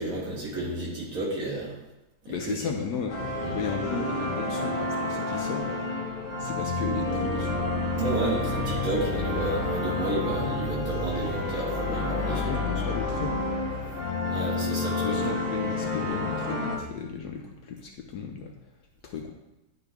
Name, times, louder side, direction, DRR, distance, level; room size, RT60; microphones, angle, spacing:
voice 1, 0.0-1.8 2.3-2.5 3.4-3.6 8.0-12.5 14.3-15.2, right 2 dB, 50° right, -5 dB, 2.0 m, -31 dB
voice 2, 2.3-5.8 6.4-7.6 12.3-13.7 15.0-18.5 19.0-19.3, left 6 dB, 70° left, 2 dB, 1.1 m, -35 dB
sound 1, 3.1-16.8, left 2 dB, 35° left, 1.1 m, -29 dB
9.9 x 4.1 x 3.4 m, 1.0 s
omnidirectional pair, 2.0 m